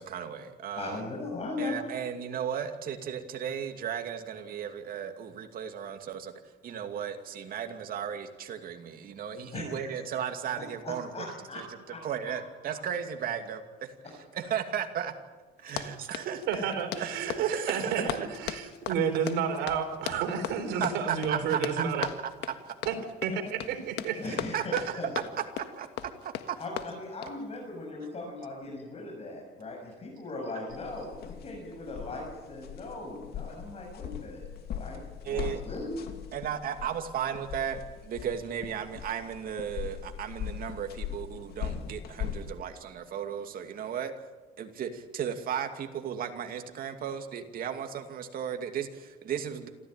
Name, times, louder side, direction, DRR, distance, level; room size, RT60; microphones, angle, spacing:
voice 1, 0.0-1.0 1.6-6.3 6.6-11.2 11.5-11.7 12.0-13.9 14.3-15.1 15.6-16.7 17.0-18.3 20.8-22.1 22.5-22.6 24.2-25.0 25.6-25.9 26.2-26.6 35.2-35.6 36.3-44.1 44.6-49.7, right 8 dB, 60° right, 5 dB, 2.5 m, -35 dB
voice 2, 0.8-1.8 9.5-9.7 10.8-12.0 12.2-12.3 15.8-15.9 24.2-25.3 26.6-34.5 34.7-36.0, left 2 dB, 35° left, -2 dB, 7.1 m, -39 dB
Run, 15.6-27.4, left 11 dB, 85° left, 1.6 m, -39 dB
voice 3, 16.5-22.1 22.9-23.0 23.2-24.2, right 7 dB, 90° right, 7 dB, 3.8 m, -31 dB
sound 1, 30.7-42.5, left 9 dB, 65° left, 2.7 m, -40 dB
27.5 x 14.5 x 9.1 m, 1.2 s
cardioid pair, 110°, 17 cm